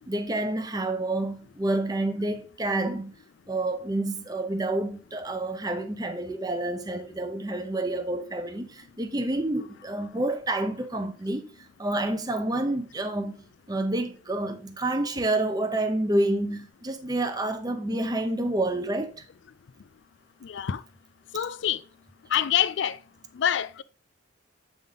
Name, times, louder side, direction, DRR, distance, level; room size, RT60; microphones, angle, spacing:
voice 1, 0.1-3.1 3.5-19.2, right 2 dB, 20° right, 0.6 m, -29 dB
voice 2, 20.4-20.8 21.3-21.8 22.3-23.0 23.4-23.8, left 9 dB, 65° left, 0.4 m, -26 dB
7.6 x 3.6 x 3.7 m
head